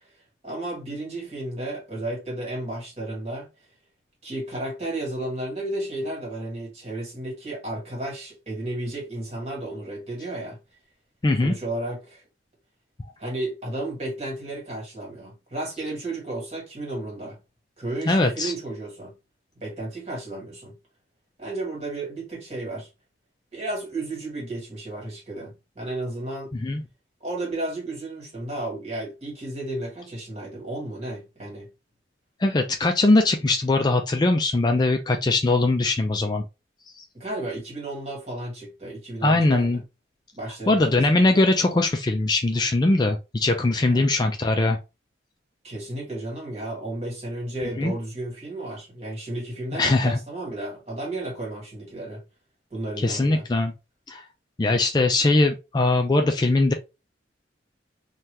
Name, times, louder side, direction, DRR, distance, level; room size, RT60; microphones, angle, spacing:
voice 1, 0.4-3.5 4.2-10.6 11.4-12.2 13.2-17.4 17.8-19.1 19.6-20.8 21.4-22.9 23.5-26.5 27.2-31.7 37.1-39.8 40.3-41.3 43.9-44.1 45.6-52.2 52.7-53.4, right 1 dB, 35° right, 1.7 m, -33 dB
voice 2, 11.2-11.5 18.1-18.5 26.6-26.8 32.4-36.4 39.2-39.8 40.7-44.8 47.8-47.9 49.7-50.2 53.0-53.7 54.1-54.2 54.6-56.7, left 2 dB, 20° left, 0.3 m, -21 dB
2.8 x 2.3 x 3.3 m
head